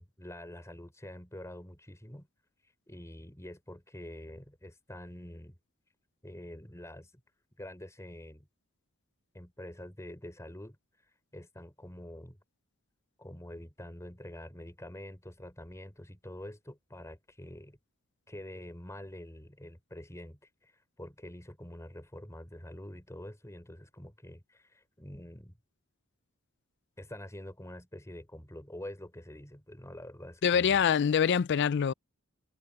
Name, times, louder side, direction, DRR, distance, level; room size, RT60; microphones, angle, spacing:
voice 1, 0.0-2.3 2.9-5.6 6.2-7.1 7.6-8.5 9.3-10.8 11.1-12.4 13.2-17.8 18.3-25.6 27.0-30.8, left 1 dB, 15° left, 4.0 m, -46 dB
voice 2, 30.4-31.9, left 7 dB, 55° left, 0.4 m, -25 dB
head